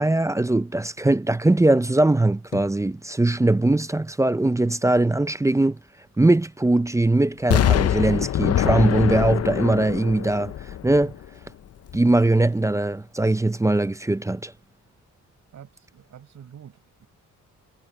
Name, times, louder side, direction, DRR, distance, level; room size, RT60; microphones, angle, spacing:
voice 1, 0.0-5.8 6.2-10.5 10.8-11.1 11.9-14.5, right 2 dB, 10° right, 0.6 m, -21 dB
sound 1, 2.3-3.6 3.9-6.2 6.6-7.5, left 11 dB, 80° left, 7.8 m, -47 dB
Explosion, 7.5-11.4 11.9-12.0, left 11 dB, 50° left, 0.7 m, -23 dB
voice 2, 15.5-17.1, right 9 dB, 65° right, 5.7 m, -47 dB
cardioid pair, 115°, 31 cm